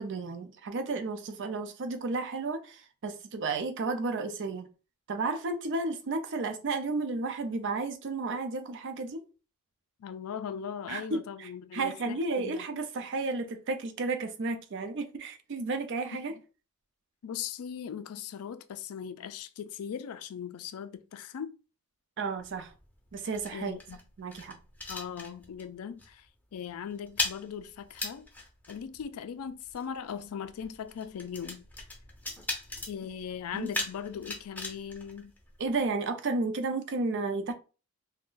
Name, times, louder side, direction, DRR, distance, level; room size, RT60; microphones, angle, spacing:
voice 1, 0.0-4.7 5.1-9.2 10.9-16.3 22.2-22.7 23.1-23.8 24.2-24.6 33.5-33.7 35.6-37.5, right 3 dB, 55° right, 0.5 m, -32 dB
voice 2, 10.0-12.7 17.2-21.5 23.5-24.0 24.9-26.3 26.5-28.2 28.7-31.7 32.9-35.3, left 7 dB, 70° left, 0.3 m, -39 dB
sound 1, 22.4-25.7 26.0-26.3 26.5-35.9, left 2 dB, 5° left, 0.6 m, -39 dB
2.5 x 2.1 x 3.7 m
head